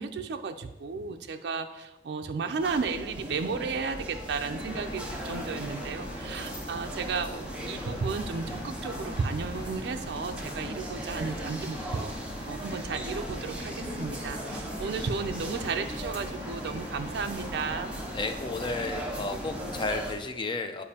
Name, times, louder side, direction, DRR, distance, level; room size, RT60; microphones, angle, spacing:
voice 1, 0.0-17.9, right 4 dB, 65° right, 6 dB, 0.4 m, -34 dB
sound 1, 2.6-20.1, equal, 5° right, 0.9 m, -38 dB
sound 2, 4.5-19.9, equal, 70° left, 2.2 m, -42 dB
voice 2, 18.1-20.8, left 3 dB, 25° left, 7 dB, 0.4 m, -33 dB
8.6 x 5.0 x 2.8 m, 1.1 s
head